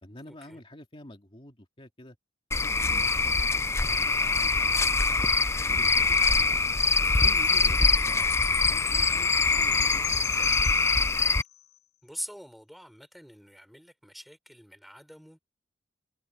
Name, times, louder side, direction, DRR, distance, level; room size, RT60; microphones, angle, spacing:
voice 1, 0.0-2.2 2.6-5.2 5.6-6.5 7.1-10.2, left 1 dB, 30° left, 2.5 m, -48 dB
Cricket / Frog, 2.5-11.4, left 4 dB, 15° left, 0.4 m, -24 dB
Chime, 7.0-11.5, left 13 dB, 60° left, 0.9 m, -38 dB
voice 2, 12.0-15.5, equal, ahead, 4.2 m, -44 dB
head